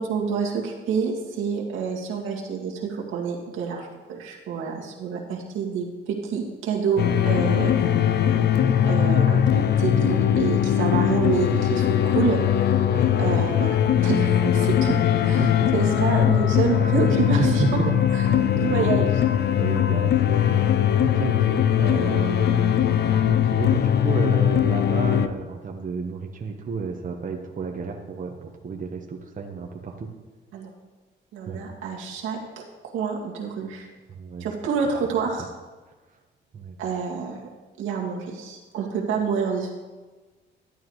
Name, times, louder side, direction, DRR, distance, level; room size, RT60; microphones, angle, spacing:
voice 1, 0.0-7.7 8.9-12.4 12.6-12.9 13.2-14.9 15.2-17.8 18.1-18.3 18.6-19.1 30.5-30.7 31.3-32.4 32.8-33.9 34.4-35.5 36.8-37.4 37.8-39.7, right 6 dB, 85° right, -2 dB, 2.0 m, -28 dB
sound 1, 7.0-25.3, left 10 dB, 55° left, 0.6 m, -20 dB
voice 2, 7.4-7.7 11.5-11.7 12.8-13.1 14.2-14.7 15.4-15.8 17.4-18.9 19.6-30.1 31.5-31.7 34.1-34.5 36.5-36.7, right 5 dB, 40° right, 1 dB, 1.2 m, -32 dB
12.0 x 11.5 x 3.2 m, 1.3 s
cardioid pair, 90°, 20 cm